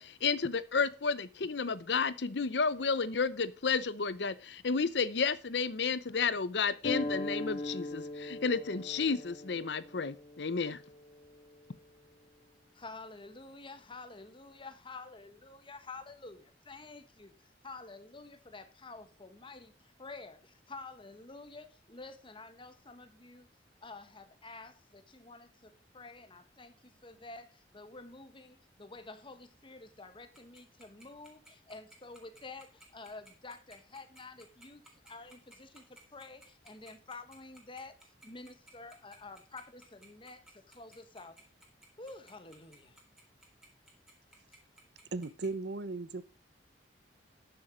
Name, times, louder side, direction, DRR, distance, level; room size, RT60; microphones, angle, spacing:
voice 1, 0.0-10.8, left 5 dB, 70° left, 0.7 m, -32 dB
sound 1, 6.8-12.0, left 2 dB, 55° left, 1.9 m, -40 dB
voice 2, 12.7-23.5 23.8-41.4 42.0-43.0, left 3 dB, 30° left, 1.3 m, -49 dB
Tick-tock, 30.3-45.5, right 1 dB, 5° right, 3.6 m, -57 dB
voice 3, 45.1-46.2, right 3 dB, 65° right, 0.7 m, -36 dB
12.0 x 7.2 x 5.1 m
head